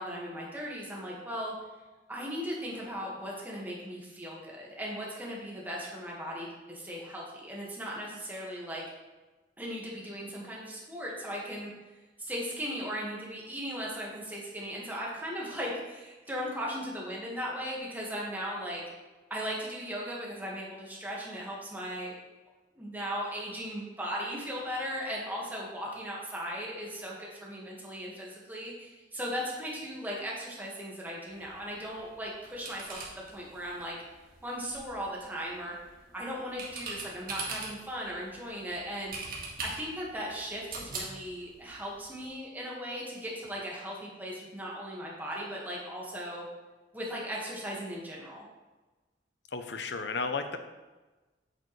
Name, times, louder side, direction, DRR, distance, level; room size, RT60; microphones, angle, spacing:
voice 1, 0.0-1.5 2.1-8.8 9.6-11.7 12.2-18.8 19.3-22.2 22.7-33.0 33.3-34.0 34.4-35.7 36.1-39.2 39.6-46.4 46.9-48.4, equal, 10° right, -4 dB, 1.7 m, -37 dB
sound 1, 31.3-42.3, right 3 dB, 55° right, 1.7 m, -44 dB
voice 2, 49.5-50.6, left 4 dB, 70° left, 8 dB, 0.7 m, -33 dB
8.4 x 6.7 x 3.2 m, 1.2 s
head